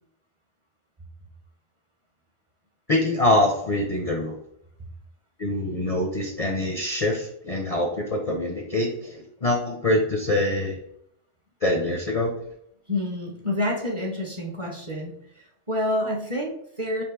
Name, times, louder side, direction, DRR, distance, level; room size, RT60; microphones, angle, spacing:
voice 1, 2.9-4.3 5.4-10.8 11.6-12.3, left 1 dB, 45° left, 1 dB, 0.5 m, -24 dB
voice 2, 12.9-17.0, left 1 dB, 30° right, 0 dB, 0.7 m, -28 dB
3.5 x 2.8 x 4.6 m, 0.71 s
omnidirectional pair, 1.2 m